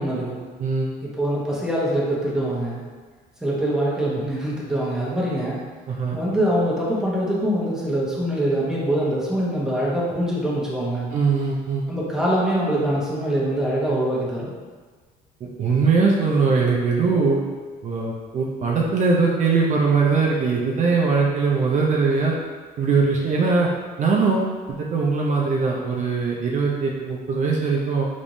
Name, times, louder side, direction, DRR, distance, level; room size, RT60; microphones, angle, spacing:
voice 1, 0.0-0.4 1.0-2.8 3.4-5.6 6.1-11.1 11.9-14.6, right 1 dB, 5° right, -7 dB, 0.9 m, -24 dB
voice 2, 0.6-0.9 5.9-6.2 11.1-11.9 15.4-17.5 17.8-22.4 22.8-23.7 24.0-28.1, right 4 dB, 45° right, -2 dB, 0.5 m, -21 dB
3.4 x 3.0 x 2.6 m, 1.5 s
cardioid pair, 110°, 17 cm